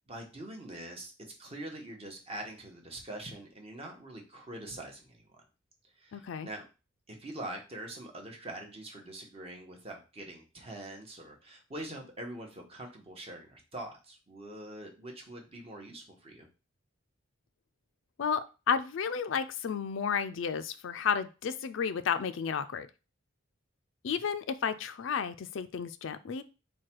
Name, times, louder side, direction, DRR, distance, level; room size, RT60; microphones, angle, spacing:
voice 1, 0.1-5.2 6.0-6.6 7.1-16.5 24.1-24.2, right 1 dB, 30° right, 1 dB, 0.9 m, -44 dB
voice 2, 6.1-6.5 18.2-22.9 24.0-26.4, left 6 dB, 65° left, 11 dB, 0.4 m, -32 dB
4.7 x 2.2 x 4.4 m, 0.31 s
head